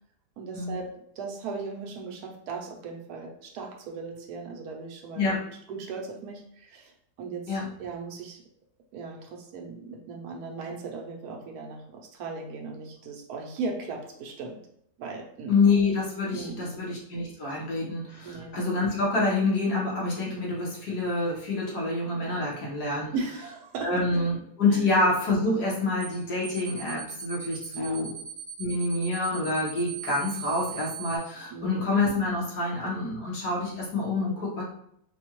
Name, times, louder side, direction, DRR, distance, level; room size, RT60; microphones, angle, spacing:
voice 1, 0.4-6.9 7.2-8.4 8.9-14.6 15.0-15.6 16.3-16.8 17.5-17.6 18.2-18.6 23.1-24.3 24.7-24.8 27.7-28.1 31.5-31.9, right 4 dB, 70° right, 1 dB, 1.2 m, -37 dB
voice 2, 15.5-23.1 23.8-28.1 28.6-34.6, left 3 dB, 70° left, -5 dB, 1.8 m, -27 dB
sound 1, 26.0-26.2 26.4-31.2, right 8 dB, 10° right, 0.6 m, -39 dB
4.2 x 2.3 x 3.0 m, 0.70 s
omnidirectional pair, 1.8 m